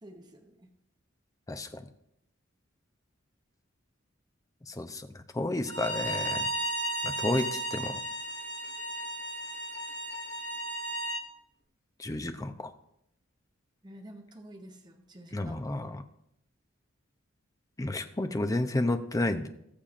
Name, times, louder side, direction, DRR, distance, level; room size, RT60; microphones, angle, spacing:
voice 1, 0.0-0.7 13.8-15.7, right 1 dB, 20° right, 2 dB, 0.9 m, -49 dB
voice 2, 1.5-1.8 4.6-6.5 7.0-8.0 12.0-12.7 15.3-16.0 17.8-19.5, left 2 dB, 15° left, 8 dB, 0.6 m, -31 dB
Bowed string instrument, 5.7-11.2, right 1 dB, 60° left, 1.8 m, -34 dB
20.0 x 6.8 x 2.5 m, 0.77 s
head